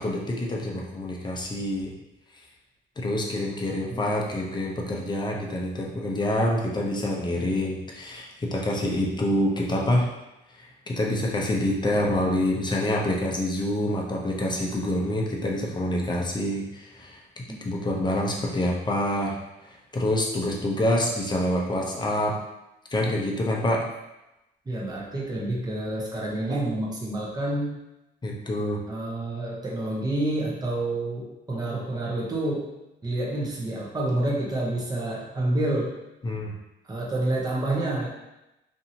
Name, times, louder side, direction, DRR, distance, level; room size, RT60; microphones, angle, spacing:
voice 1, 0.0-1.9 3.0-10.1 10.9-19.4 19.7-22.4 22.9-23.9 28.2-28.8 36.2-36.5, left 1 dB, 20° left, -2 dB, 0.6 m, -26 dB
voice 2, 3.9-4.2 17.5-17.6 24.7-27.8 28.9-32.7 33.0-35.9 36.9-38.1, right 1 dB, 20° right, -4 dB, 0.8 m, -28 dB
2.7 x 2.6 x 2.8 m, 0.95 s
cardioid pair, 90°, 20 cm